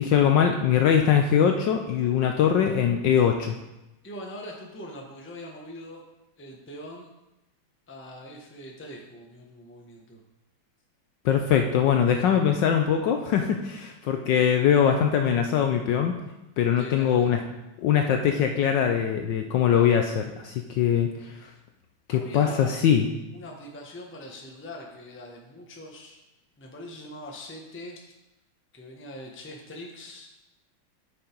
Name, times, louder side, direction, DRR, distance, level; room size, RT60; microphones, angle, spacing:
voice 1, 0.0-3.5 11.2-16.1 16.6-17.4 17.8-21.3 22.1-23.1, left 8 dB, 70° left, 4 dB, 1.1 m, -22 dB
voice 2, 4.0-6.0 6.4-7.1 7.9-10.2 16.8-17.4 22.1-22.7 23.3-26.2 26.6-28.1 28.7-30.4, left 1 dB, 10° left, 0 dB, 0.7 m, -42 dB
8.8 x 6.5 x 4.5 m, 0.97 s
omnidirectional pair, 2.4 m